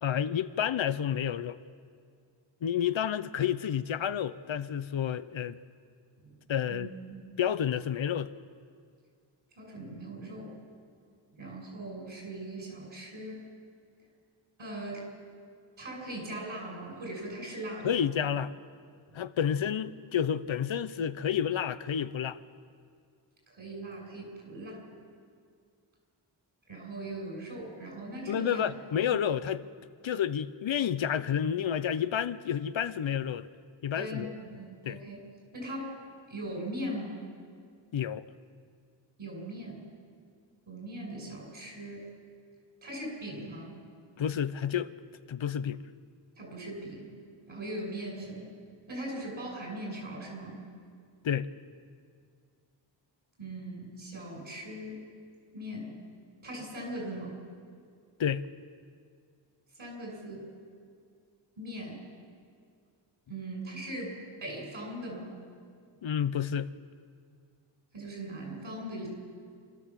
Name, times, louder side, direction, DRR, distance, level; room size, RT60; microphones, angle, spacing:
voice 1, 0.0-1.6 2.6-5.6 6.5-6.9 7.4-8.3 17.8-18.5 19.1-22.4 28.3-29.6 30.0-33.5 33.8-34.4 34.8-35.0 37.9-38.3 44.2-44.9 45.3-45.8 51.2-51.5 58.2-58.5 66.0-66.7, left 9 dB, 75° left, 13 dB, 0.7 m, -30 dB
voice 2, 6.7-7.4 9.6-10.6 11.4-13.4 14.6-15.0 15.8-18.0 23.5-24.8 26.7-28.6 29.1-29.2 33.9-35.2 35.5-35.9 36.3-37.2 39.2-39.8 40.7-42.0 42.8-43.8 46.3-47.1 47.5-48.5 48.9-50.6 53.4-55.1 55.5-56.0 56.4-57.4 59.8-60.5 61.6-62.0 63.3-64.1 64.4-65.3 67.9-69.1, right 1 dB, 75° right, -1 dB, 6.8 m, -40 dB
27.0 x 13.5 x 7.4 m, 2.2 s
wide cardioid pair, 75°, 47 cm